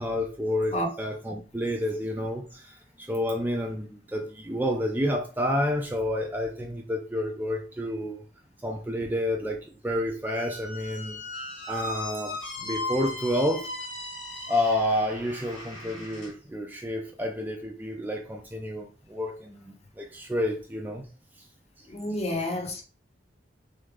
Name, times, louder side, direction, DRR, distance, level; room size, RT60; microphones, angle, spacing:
voice 1, 0.0-8.2 8.6-11.3 11.5-13.7 14.5-21.1, left 1 dB, 10° right, 0.4 m, -29 dB
Squeak, 10.2-16.3, left 2 dB, 75° left, 1.7 m, -37 dB
voice 2, 21.9-22.8, left 1 dB, 35° left, 0.9 m, -29 dB
3.8 x 3.2 x 3.6 m
head